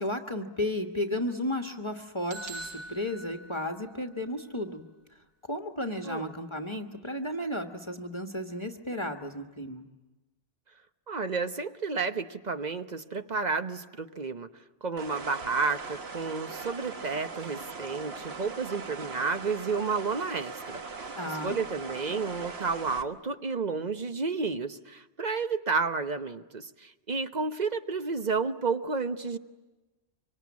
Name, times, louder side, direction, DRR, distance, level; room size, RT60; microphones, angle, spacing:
voice 1, 0.0-4.8 5.5-9.9 21.2-21.6, left 1 dB, 25° left, 4 dB, 1.3 m, -33 dB
sound 1, 2.3-4.2, right 2 dB, 75° right, 1.6 m, -43 dB
voice 2, 11.1-14.5 14.8-29.4, right 4 dB, 40° right, 9 dB, 1.1 m, -31 dB
sound 2, 15.0-23.0, right 4 dB, 60° right, 1.5 m, -40 dB
25.5 x 24.5 x 9.6 m, 1.1 s
omnidirectional pair, 1.2 m